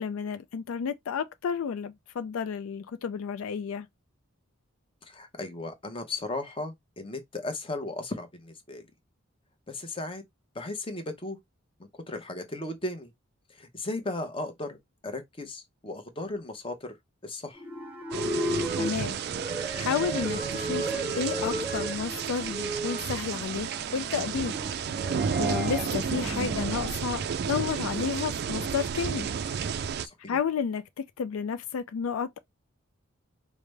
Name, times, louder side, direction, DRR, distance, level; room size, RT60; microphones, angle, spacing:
voice 1, 0.0-3.9 18.8-19.2 19.8-20.9 21.2-24.5 25.4-29.3 30.3-32.4, left 6 dB, 80° left, 0.4 m, -31 dB
voice 2, 5.0-8.8 9.7-10.2 10.5-11.4 11.9-13.1 13.5-14.8 15.0-17.0 17.2-17.6 30.0-30.4, left 2 dB, 25° left, 0.8 m, -36 dB
sound 1, 17.6-26.9, right 1 dB, 5° right, 0.7 m, -35 dB
sound 2, 18.1-30.1, right 6 dB, 50° right, 0.3 m, -32 dB
4.9 x 2.1 x 3.2 m
head